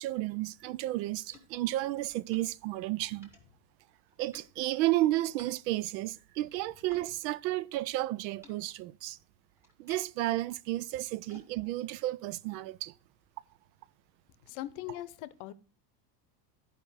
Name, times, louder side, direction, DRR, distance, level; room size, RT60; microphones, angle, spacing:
voice 1, 0.0-3.3 4.2-9.2 9.8-12.9, right 16 dB, 90° right, 0.6 m, -32 dB
sound 1, 0.7-7.1 7.4-13.3, left 1 dB, 5° right, 1.3 m, -62 dB
voice 2, 14.4-15.5, left 14 dB, 55° left, 0.7 m, -40 dB
11.0 x 5.1 x 4.7 m
cardioid pair, 155°, 50 cm